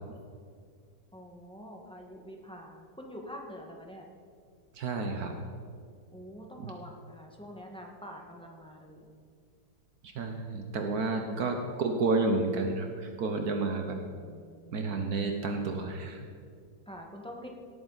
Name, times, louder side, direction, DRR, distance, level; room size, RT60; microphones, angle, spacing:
voice 1, 1.1-4.1 6.1-9.1 11.1-11.6 14.2-14.8 16.9-17.5, equal, 5° left, 0 dB, 1.3 m, -46 dB
voice 2, 4.8-5.3 10.0-14.0 14.7-16.2, right 3 dB, 65° right, 4 dB, 1.3 m, -30 dB
17.5 x 8.9 x 4.0 m, 2.1 s
omnidirectional pair, 1.8 m